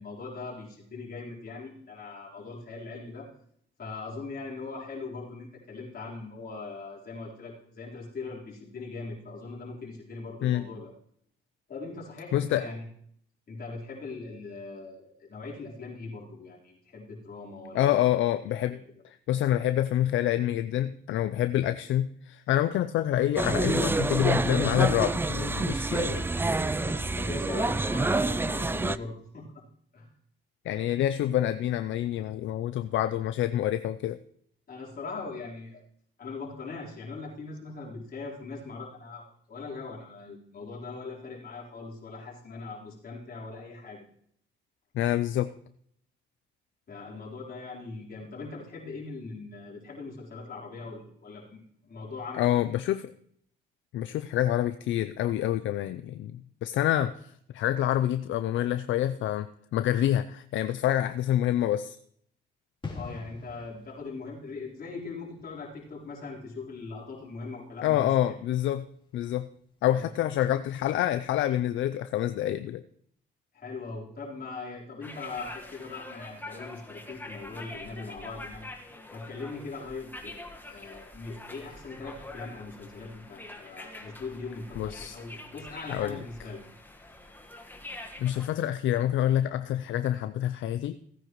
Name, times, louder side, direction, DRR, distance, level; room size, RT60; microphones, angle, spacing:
voice 1, 0.0-3.3 3.8-10.9 11.7-12.8 13.5-18.1 18.5-18.8 26.8-29.6 29.9-30.1 34.7-35.8 36.2-44.0 46.9-52.5 62.9-68.4 69.9-70.1 73.5-78.7 79.1-86.6, left 3 dB, 50° left, -3 dB, 4.0 m, -40 dB
voice 2, 12.3-12.6 17.7-18.8 19.0-26.3 30.6-34.2 44.9-45.5 52.4-53.1 53.9-62.0 67.8-68.8 69.1-69.5 69.8-72.8 84.8-85.2 85.9-86.2 88.2-91.0, left 12 dB, 75° left, 11 dB, 0.5 m, -27 dB
sound 1, 23.4-29.0, right 2 dB, 10° right, 0.4 m, -27 dB
sound 2, 62.8-69.3 69.6-69.8, left 4 dB, 25° left, 3.1 m, -47 dB
sound 3, 75.0-88.5, left 2 dB, 10° left, 1.4 m, -45 dB
16.5 x 9.6 x 3.1 m, 0.65 s
cardioid pair, 90°, 20 cm